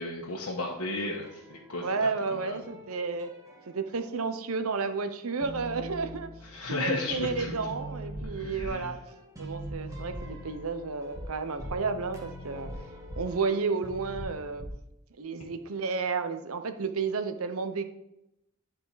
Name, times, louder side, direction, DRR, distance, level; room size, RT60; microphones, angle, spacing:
voice 1, 0.0-2.7 6.4-7.6 8.2-9.0, left 2 dB, 85° left, -3 dB, 1.2 m, -34 dB
sound 1, 1.0-2.2 2.6-4.5 4.9-6.8 7.1-14.3, equal, 15° right, 1.5 m, -44 dB
voice 2, 1.8-3.3 3.7-6.3 6.7-9.0 9.4-12.7 13.2-14.7 15.2-17.8, right 4 dB, 75° right, 8 dB, 0.8 m, -32 dB
sound 2, 8.1-8.3 8.6-8.7 9.6-9.7 10.1-10.2 11.1-11.2 11.6-11.7 12.6-12.7 13.1-13.2 14.1-14.3 14.6-14.7, equal, 15° left, 1.9 m, -40 dB
11.5 x 4.9 x 4.1 m, 0.87 s
head